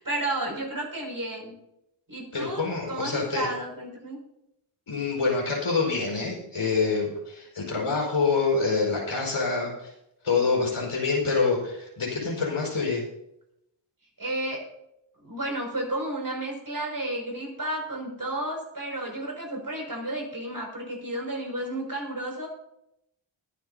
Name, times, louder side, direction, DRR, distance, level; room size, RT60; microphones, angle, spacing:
voice 1, 0.0-1.6 2.1-2.6 2.9-4.2 14.2-14.6 15.2-22.5, right 1 dB, 40° right, 0 dB, 6.0 m, -32 dB
voice 2, 2.3-3.5 4.9-9.9 10.2-13.0, left 4 dB, 70° left, -2 dB, 5.1 m, -26 dB
21.5 x 10.5 x 2.8 m, 0.80 s
wide cardioid pair, 75°, 50 cm